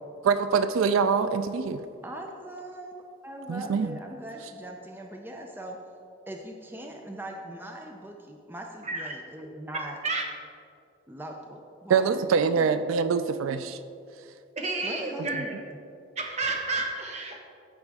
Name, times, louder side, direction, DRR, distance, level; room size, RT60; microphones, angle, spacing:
voice 1, 0.2-1.8 3.5-3.9 11.9-13.8 15.2-15.3, right 6 dB, 90° right, 11 dB, 0.4 m, -24 dB
voice 2, 2.0-5.8 6.3-10.0 11.1-12.7 14.8-15.8, right 1 dB, 10° right, 2 dB, 0.5 m, -41 dB
voice 3, 8.8-9.2 9.4-10.3 14.6-15.5 16.2-17.4, right 3 dB, 35° right, 2 dB, 1.0 m, -31 dB
13.5 x 4.9 x 3.5 m, 2.5 s
head